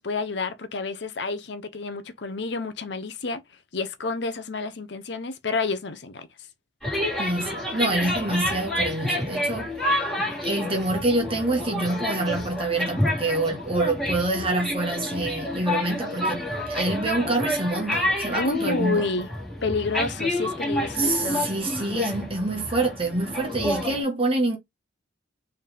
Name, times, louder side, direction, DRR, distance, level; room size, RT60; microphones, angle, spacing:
voice 1, 0.0-3.4 3.7-6.3 18.4-19.3 19.6-21.5, left 4 dB, 65° left, 0.7 m, -29 dB
sound 1, 6.8-24.0, left 1 dB, ahead, 1.9 m, -29 dB
voice 2, 7.2-10.1 10.4-16.4 16.7-19.0 20.9-24.6, right 2 dB, 30° right, 1.2 m, -26 dB
4.5 x 3.4 x 3.3 m
head